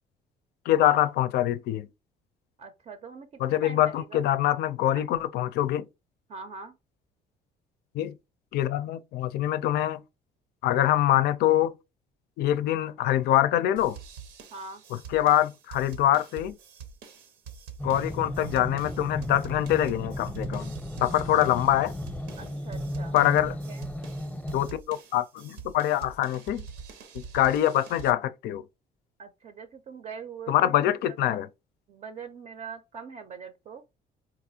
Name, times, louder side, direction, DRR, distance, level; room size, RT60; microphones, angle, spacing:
voice 1, 0.7-1.9 3.4-5.9 7.9-8.1 8.5-10.0 10.6-11.7 12.4-14.0 15.1-16.6 17.8-20.7 21.0-21.9 23.1-23.6 24.5-26.6 27.1-28.6 30.5-31.5, left 13 dB, 70° left, 0.4 m, -24 dB
voice 2, 2.6-4.3 4.9-5.0 6.3-6.8 14.5-14.8 21.3-21.4 22.4-23.1 23.4-23.9 29.2-31.4 31.9-33.8, right 5 dB, 45° right, 0.5 m, -43 dB
sound 1, 13.8-28.1, right 6 dB, 90° right, 0.8 m, -45 dB
sound 2, 17.8-24.7, left 1 dB, 5° left, 0.7 m, -35 dB
4.0 x 2.5 x 2.7 m
cardioid pair, 110°, 17 cm